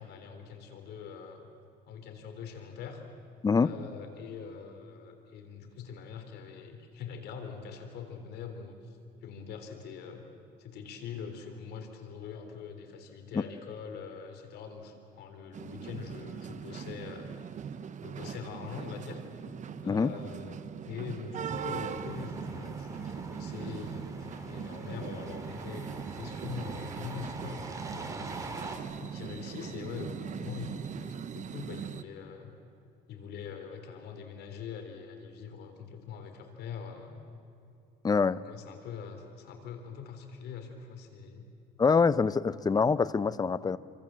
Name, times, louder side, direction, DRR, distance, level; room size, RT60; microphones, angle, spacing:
voice 1, 0.0-1.4 1.9-3.0 3.6-10.3 10.6-17.3 18.0-19.2 19.8-28.3 29.0-32.5 33.1-37.2 38.4-41.5, left 6 dB, 75° left, 3.6 m, -43 dB
sound 1, 15.5-32.0, right 7 dB, 45° right, 1.2 m, -40 dB
sound 2, 21.5-28.8, right 2 dB, 20° right, 3.3 m, -44 dB
voice 2, 38.0-38.4 41.8-43.8, left 5 dB, 25° left, 0.8 m, -25 dB
28.5 x 26.0 x 7.6 m
cardioid pair, 110°, 17 cm